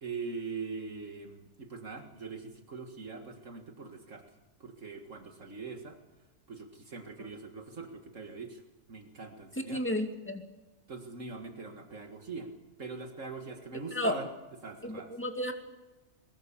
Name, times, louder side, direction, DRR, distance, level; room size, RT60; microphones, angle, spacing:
voice 1, 0.0-4.3 4.6-6.0 6.5-8.6 8.9-9.8 10.9-12.5 12.8-14.3 14.6-15.1, right 4 dB, 55° right, 5 dB, 2.2 m, -42 dB
voice 2, 9.7-10.4 13.9-14.1 14.8-15.5, left 1 dB, 10° left, 4 dB, 2.4 m, -32 dB
22.0 x 22.0 x 7.4 m, 1.1 s
omnidirectional pair, 1.6 m